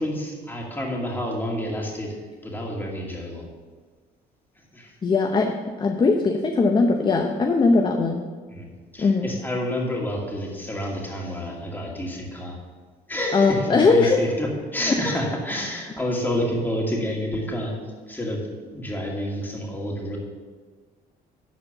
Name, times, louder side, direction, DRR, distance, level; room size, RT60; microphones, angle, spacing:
voice 1, 0.0-2.1 2.4-3.5 4.7-4.9 8.5-12.6 13.1-17.7 18.1-18.4 18.7-20.2, equal, 10° left, -2 dB, 2.4 m, -29 dB
voice 2, 5.0-8.3 9.0-9.3 13.3-14.2 14.9-15.0, left 4 dB, 25° left, 4 dB, 0.7 m, -20 dB
12.0 x 4.3 x 7.0 m, 1.5 s
cardioid pair, 110°, 17 cm